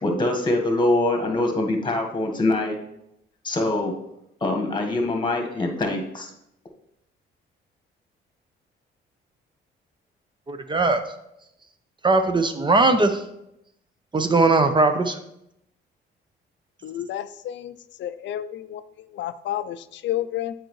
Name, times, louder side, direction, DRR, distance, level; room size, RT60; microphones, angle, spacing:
voice 1, 0.0-2.8 3.4-3.9 4.4-6.3, left 2 dB, 25° left, 3 dB, 1.4 m, -23 dB
voice 2, 10.5-11.0 12.0-13.2 14.1-15.2, right 3 dB, 25° right, 8 dB, 0.6 m, -19 dB
voice 3, 16.8-20.5, left 12 dB, 65° left, 13 dB, 0.4 m, -31 dB
7.7 x 4.7 x 3.1 m, 0.81 s
cardioid pair, 90°, 20 cm